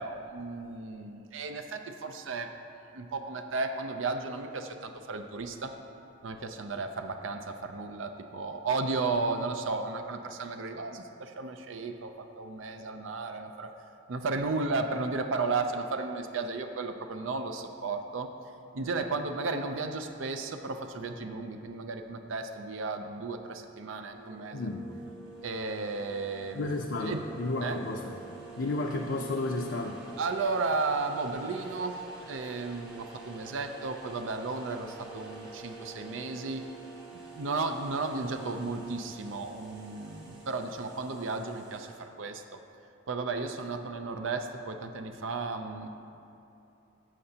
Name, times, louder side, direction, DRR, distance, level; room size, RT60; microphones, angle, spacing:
voice 1, 0.0-2.5 2.9-5.8 6.2-13.7 14.1-18.3 18.7-24.7 25.4-27.2 27.6-27.8 30.2-36.6 37.1-42.6 43.1-45.9, right 3 dB, 85° right, 6 dB, 0.5 m, -34 dB
sound 1, 24.1-42.0, right 3 dB, 70° right, 1.4 m, -48 dB
voice 2, 24.5-24.9 26.5-28.2 28.6-30.0, left 2 dB, 75° left, 0 dB, 0.6 m, -32 dB
12.5 x 7.7 x 2.8 m, 2.8 s
head